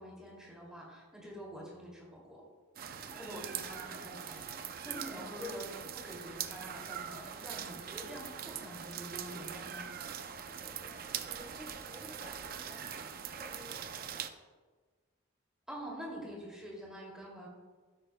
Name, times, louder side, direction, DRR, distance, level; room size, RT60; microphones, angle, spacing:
voice 1, 0.0-2.4 3.2-4.5 4.8-5.7 5.9-9.9 15.7-17.5, equal, 5° right, -4 dB, 2.5 m, -46 dB
sound 1, 2.8-14.3, right 8 dB, 45° right, 0.5 m, -42 dB
voice 2, 3.1-3.7 4.8-5.4 10.3-14.4, equal, 20° left, -3 dB, 1.1 m, -55 dB
12.5 x 10.0 x 2.2 m, 1.4 s
head